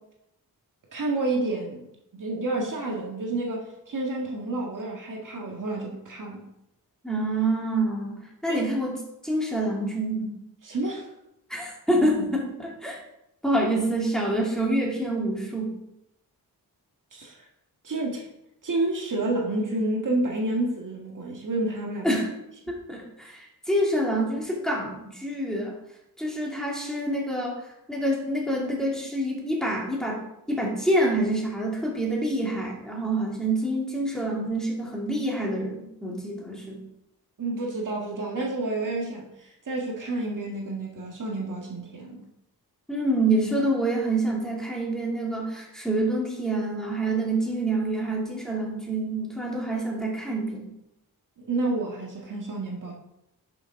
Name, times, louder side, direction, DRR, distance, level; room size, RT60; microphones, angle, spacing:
voice 1, 0.9-6.4 8.5-8.6 10.6-11.1 17.1-17.3 17.8-18.3 18.6-22.2 37.4-42.3 51.4-52.9, right 2 dB, 55° right, 0 dB, 1.7 m, -29 dB
voice 2, 7.0-8.9 9.2-10.3 11.5-13.0 13.4-15.7 22.0-22.3 22.7-25.7 26.2-27.6 27.9-30.2 30.5-36.8 42.9-50.7, right 1 dB, ahead, -3 dB, 2.7 m, -27 dB
11.0 x 6.4 x 3.7 m, 0.83 s
wide cardioid pair, 100°, 37 cm